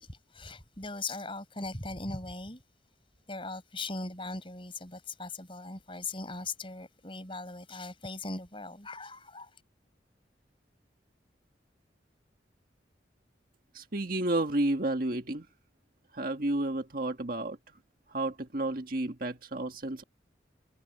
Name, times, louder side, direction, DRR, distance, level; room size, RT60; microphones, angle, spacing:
voice 1, 0.1-2.6 3.3-9.5, left 3 dB, 30° left, 5.3 m, -39 dB
voice 2, 13.7-15.5 16.1-17.6 18.1-20.0, right 2 dB, 50° right, 1.7 m, -31 dB
head